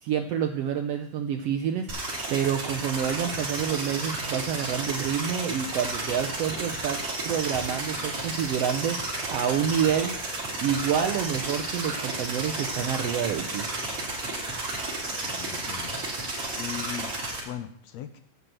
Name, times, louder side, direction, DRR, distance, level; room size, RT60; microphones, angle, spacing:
voice 1, 0.0-10.2 10.6-13.7, right 8 dB, 80° right, 4 dB, 1.4 m, -28 dB
sound 1, 1.9-17.4, right 2 dB, 45° right, 3.3 m, -32 dB
voice 2, 15.0-16.0 16.5-17.1 17.4-18.2, left 10 dB, 75° left, 9 dB, 1.7 m, -39 dB
9.5 x 6.0 x 7.7 m, 0.64 s
omnidirectional pair, 3.6 m